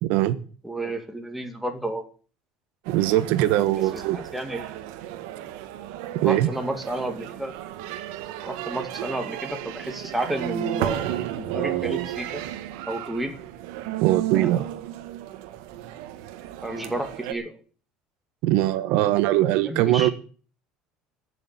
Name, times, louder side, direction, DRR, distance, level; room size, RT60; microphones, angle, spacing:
voice 1, 0.0-0.4 2.9-4.2 6.2-6.5 14.0-14.7 18.4-20.1, right 14 dB, 70° right, 13 dB, 1.2 m, -21 dB
voice 2, 0.6-2.0 3.7-4.7 6.2-7.5 8.4-12.4 12.9-13.4 14.3-14.8 16.6-17.6 19.3-20.1, right 1 dB, 5° right, 5 dB, 2.1 m, -32 dB
sound 1, 2.9-17.3, right 13 dB, 90° right, 1.6 m, -33 dB
15.0 x 6.8 x 9.7 m, 0.40 s
cardioid pair, 155°, 3 cm